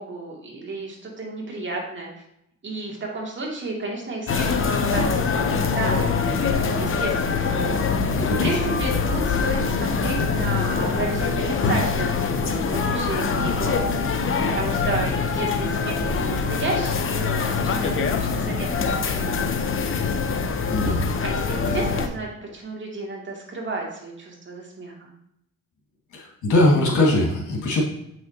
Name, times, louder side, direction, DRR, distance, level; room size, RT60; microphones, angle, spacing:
voice 1, 0.0-2.1 2.6-7.5 8.4-13.9 14.6-20.1 21.2-25.1, right 3 dB, 40° right, -1 dB, 2.3 m, -32 dB
sound 1, 4.3-22.1, left 5 dB, 45° left, 0.8 m, -24 dB
voice 2, 8.1-8.6 20.7-21.0 26.1-27.8, left 1 dB, 80° left, -1 dB, 2.1 m, -21 dB
7.5 x 6.2 x 2.8 m, 0.78 s
cardioid pair, 90°, 30 cm